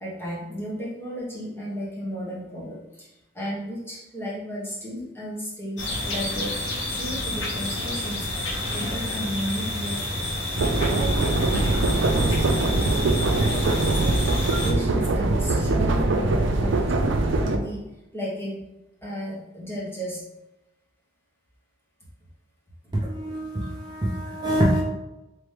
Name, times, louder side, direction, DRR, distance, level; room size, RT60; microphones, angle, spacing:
voice 1, 0.0-6.7 6.9-8.3 8.7-10.3 10.8-14.4 14.6-16.9 17.4-18.6 19.0-20.2, equal, 15° left, -7 dB, 1.3 m, -34 dB
sound 1, 5.8-14.7, left 1 dB, 75° left, 1.1 m, -29 dB
sound 2, 10.6-17.6, right 2 dB, 85° right, 0.4 m, -22 dB
voice 2, 22.9-24.8, equal, 25° right, -5 dB, 0.6 m, -25 dB
3.9 x 3.1 x 3.3 m, 0.95 s
head